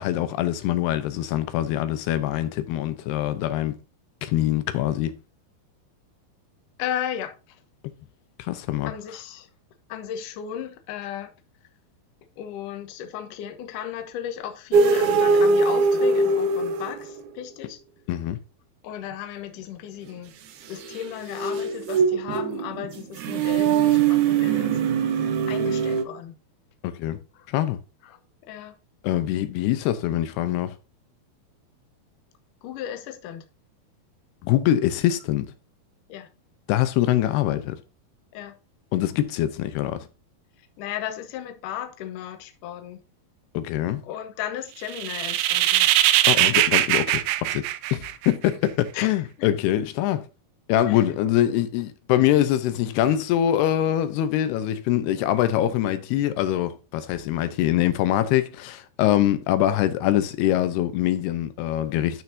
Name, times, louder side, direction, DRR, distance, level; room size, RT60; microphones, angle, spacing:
voice 1, 0.0-3.8 4.2-5.1 8.4-8.9 18.1-18.4 26.8-27.2 27.5-27.8 29.0-30.8 34.4-35.5 36.7-37.8 38.9-40.0 43.5-44.0 46.2-47.6 47.9-50.3 50.7-62.2, left 12 dB, 90° left, 2.9 m, -24 dB
voice 2, 6.8-7.3 8.8-9.5 9.9-11.3 12.4-17.8 18.8-20.3 20.7-24.8 25.5-26.3 27.4-27.5 28.0-28.2 28.5-28.7 32.6-33.4 36.1-36.3 38.3-38.5 40.8-43.0 44.0-45.9 48.9-49.5 50.9-51.0, left 10 dB, 65° left, 2.5 m, -35 dB
sound 1, 14.7-17.4 20.8-26.0, right 5 dB, 65° right, 2.0 m, -22 dB
sound 2, 44.9-48.5, right 14 dB, 90° right, 2.8 m, -21 dB
12.5 x 6.0 x 2.8 m
omnidirectional pair, 4.6 m